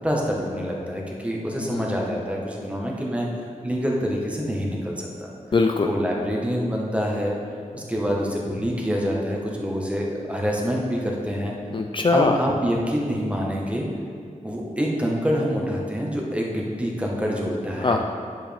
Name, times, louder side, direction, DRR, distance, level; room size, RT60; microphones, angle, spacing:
voice 1, 0.0-3.3 3.6-5.3 5.8-7.4 7.7-11.5 12.1-13.9 14.4-18.0, equal, 10° right, -2 dB, 1.3 m, -26 dB
voice 2, 1.6-2.0 5.5-5.9 11.7-12.4 17.8-18.0, left 4 dB, 40° left, 4 dB, 0.4 m, -22 dB
10.0 x 7.3 x 3.5 m, 2.2 s
wide cardioid pair, 110°, 14 cm